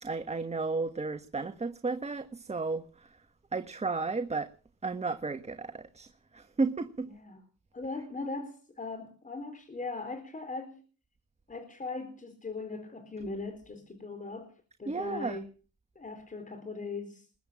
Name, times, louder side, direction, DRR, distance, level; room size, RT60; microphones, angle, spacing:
voice 1, 0.0-3.2 3.5-4.5 4.8-7.1 14.9-15.4, right 3 dB, 20° right, 1.4 m, -33 dB
voice 2, 7.1-7.4 7.7-10.8 11.5-14.5 14.8-15.5 16.0-17.2, left 3 dB, 25° left, 4.1 m, -39 dB
21.5 x 8.9 x 7.6 m
cardioid pair, 90°, 30 cm